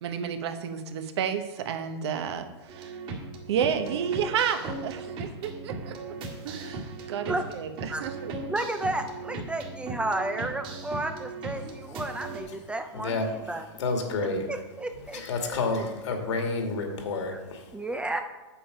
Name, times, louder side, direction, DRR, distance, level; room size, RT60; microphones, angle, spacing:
voice 1, 0.0-3.0 3.5-6.2 6.4-8.4, right 7 dB, 65° right, 8 dB, 1.2 m, -31 dB
sound 1, 2.7-12.4, right 3 dB, 35° right, 2.0 m, -38 dB
voice 2, 8.5-13.7 14.2-15.9 17.3-17.4 17.7-18.2, right 2 dB, 5° right, 7 dB, 0.4 m, -33 dB
voice 3, 12.9-13.3 13.8-14.5 15.1-17.6, left 3 dB, 80° left, 3 dB, 2.3 m, -29 dB
8.7 x 7.4 x 5.2 m, 1.1 s
hypercardioid pair, 145°, 15 cm